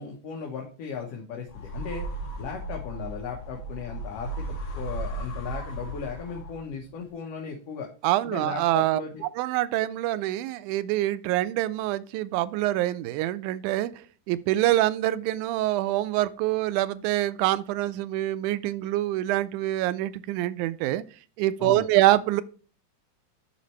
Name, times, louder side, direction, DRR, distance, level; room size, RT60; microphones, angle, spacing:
voice 1, 0.0-7.9 8.2-9.2 21.6-21.9, left 6 dB, 60° left, 2.0 m, -37 dB
sound 1, 1.5-6.8, right 1 dB, 40° left, 2.0 m, -36 dB
voice 2, 8.0-9.0 9.4-13.9 14.3-21.0 21.4-22.4, right 15 dB, 85° right, 2.0 m, -25 dB
11.5 x 4.1 x 3.1 m
omnidirectional pair, 3.5 m